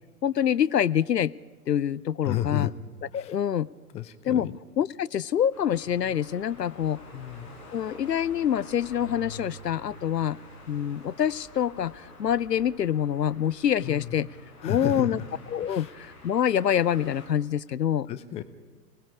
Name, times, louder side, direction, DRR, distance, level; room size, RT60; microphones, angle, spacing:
voice 1, 0.2-1.3 1.7-2.7 3.1-3.7 4.2-4.5 4.8-7.0 7.7-10.4 10.7-14.3 14.6-15.2 15.5-18.1, left 9 dB, 80° left, 20 dB, 0.6 m, -26 dB
voice 2, 2.2-2.7 3.1-3.3 3.9-4.6 7.1-7.5 13.8-14.1 14.6-15.2 15.6-15.9 18.1-18.4, left 12 dB, 15° left, 12 dB, 0.6 m, -32 dB
sound 1, 5.5-17.3, left 2 dB, 65° left, 6.7 m, -47 dB
29.5 x 19.0 x 4.9 m, 1.4 s
figure-of-eight pair, 105°, 48 cm